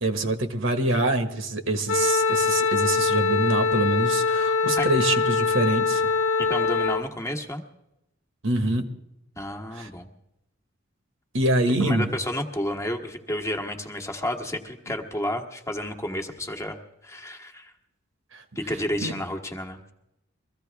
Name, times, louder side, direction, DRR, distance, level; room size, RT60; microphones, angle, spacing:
voice 1, 0.0-6.1 8.4-8.9 9.7-9.9 11.3-12.1 18.3-18.4 19.0-19.1, right 2 dB, 70° right, 7 dB, 1.5 m, -25 dB
Wind instrument woodwind instrument, 1.9-7.0, left 4 dB, 85° left, 0.8 m, -23 dB
voice 2, 6.4-7.6 9.4-10.1 11.8-16.8 17.0-17.7 18.5-19.8, left 1 dB, 15° left, 3 dB, 1.3 m, -31 dB
23.0 x 15.0 x 3.4 m, 0.83 s
head